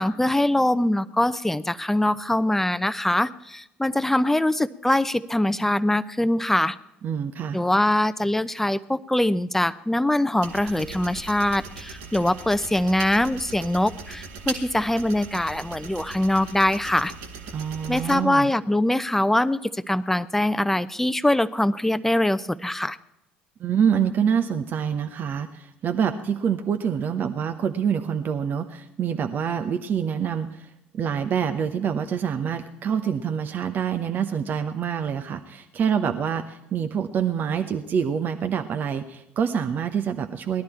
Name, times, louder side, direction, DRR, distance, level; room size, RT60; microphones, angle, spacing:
voice 1, 0.0-6.8 7.5-17.1 17.9-23.0, left 1 dB, 5° left, 15 dB, 0.7 m, -23 dB
voice 2, 7.0-7.6 17.5-18.5 23.6-40.6, right 7 dB, 45° right, 7 dB, 1.0 m, -26 dB
sound 1, 10.4-18.2, right 4 dB, 70° right, 1.9 m, -39 dB
19.0 x 12.0 x 4.4 m, 0.86 s
figure-of-eight pair, 60°, 5 cm